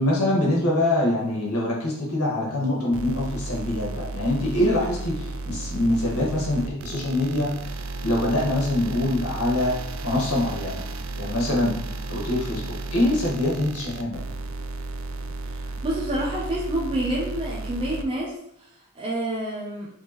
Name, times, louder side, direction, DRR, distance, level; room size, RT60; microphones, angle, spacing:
voice 1, 0.0-7.5 8.0-9.8 10.0-10.8 11.2-11.8 12.1-14.2, left 1 dB, 90° left, -4 dB, 1.8 m, -24 dB
sound 1, 2.9-18.0, right 2 dB, 65° right, 0.4 m, -33 dB
voice 2, 15.4-18.7 18.9-19.9, right 1 dB, 25° right, -5 dB, 0.7 m, -28 dB
4.8 x 3.5 x 3.1 m, 0.75 s
head